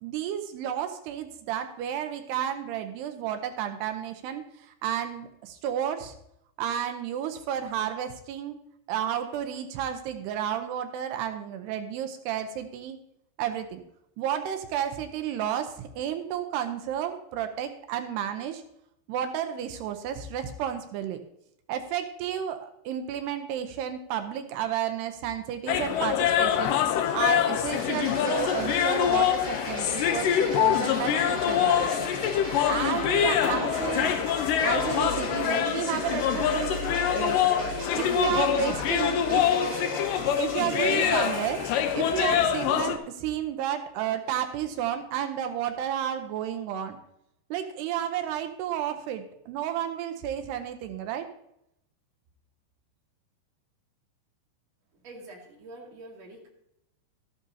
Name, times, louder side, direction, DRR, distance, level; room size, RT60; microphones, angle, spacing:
voice 1, 0.0-6.2 6.6-8.6 8.9-13.0 13.4-13.8 14.2-18.6 19.1-21.2 21.7-26.7 27.1-32.1 32.4-34.2 34.6-36.8 37.1-37.4 37.9-39.6 40.4-41.6 41.9-47.0 47.5-51.3, right 10 dB, 80° right, 7 dB, 2.8 m, -32 dB
sound 1, 25.7-43.0, left 9 dB, 85° left, 1.9 m, -25 dB
sound 2, 27.7-42.5, right 1 dB, 25° right, 5.6 m, -38 dB
voice 2, 55.0-56.5, right 2 dB, 45° right, -2 dB, 3.1 m, -45 dB
13.5 x 11.5 x 2.8 m, 0.78 s
omnidirectional pair, 4.9 m